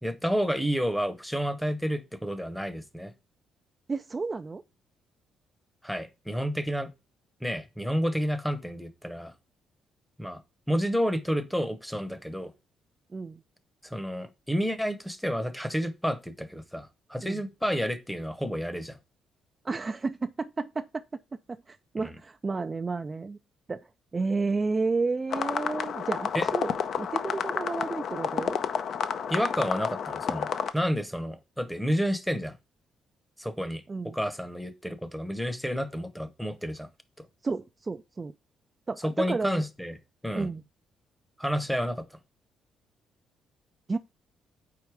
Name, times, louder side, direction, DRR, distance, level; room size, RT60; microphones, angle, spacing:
voice 1, 0.0-3.1 5.8-6.9 7.4-9.3 10.2-10.4 10.7-12.5 13.8-19.0 22.0-22.2 26.3-26.5 29.3-32.5 33.4-36.9 39.0-39.9 40.2-40.5 41.4-42.0, equal, ahead, 0.8 m, -30 dB
voice 2, 3.9-4.6 13.1-13.4 17.2-17.4 19.6-21.0 21.5-23.4 23.7-23.8 24.1-26.7 27.0-28.6 33.9-34.2 37.4-38.3 38.9-39.6 40.3-40.6 43.9-44.0, right 4 dB, 30° right, 0.3 m, -31 dB
sound 1, 25.3-30.7, left 7 dB, 65° left, 0.6 m, -30 dB
4.7 x 4.2 x 4.8 m
cardioid pair, 90°, 0 cm